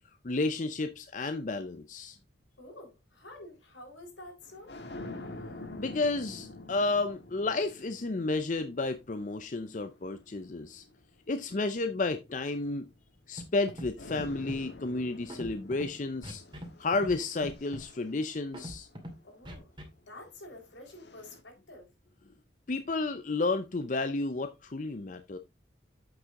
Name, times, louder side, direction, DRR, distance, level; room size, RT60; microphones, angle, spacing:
voice 1, 0.2-2.2 5.8-10.9 11.3-12.9 13.3-16.4 16.8-18.9 22.7-25.4, left 3 dB, 40° left, 0.5 m, -32 dB
voice 2, 2.6-4.8 19.2-19.7 20.1-21.9, left 1 dB, 80° left, 3.9 m, -49 dB
sound 1, 4.4-11.0 11.8-13.6 14.0-19.3 20.3-21.4, left 2 dB, 65° left, 1.5 m, -48 dB
Scratching (performance technique), 13.4-13.5 13.7-13.9 14.2-14.6 15.3-15.9 16.2-16.7 16.9-17.2 17.4-17.8 18.5-19.1 19.5-19.8, equal, 25° right, 2.2 m, -41 dB
8.1 x 6.1 x 3.7 m
head